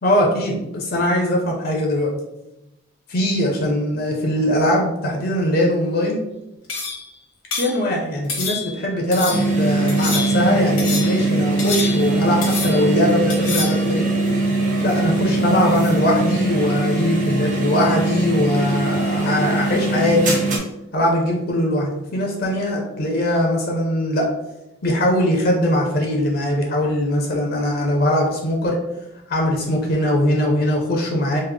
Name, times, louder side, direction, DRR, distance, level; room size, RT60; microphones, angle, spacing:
voice 1, 0.0-2.1 3.1-6.2 7.6-14.1 14.8-20.4 20.9-24.2 24.8-28.7 29.3-31.4, left 1 dB, 45° left, -1 dB, 0.5 m, -21 dB
sound 1, 6.7-7.1 7.5-7.8 8.3-8.8 9.1-9.5 9.9-10.5 10.8-11.2 11.6-12.2 12.4-12.9 13.3-13.8, left 4 dB, 75° left, 0.8 m, -27 dB
sound 2, 9.3-20.6, right 2 dB, 35° right, 0.6 m, -21 dB
3.3 x 2.0 x 3.3 m, 0.93 s
head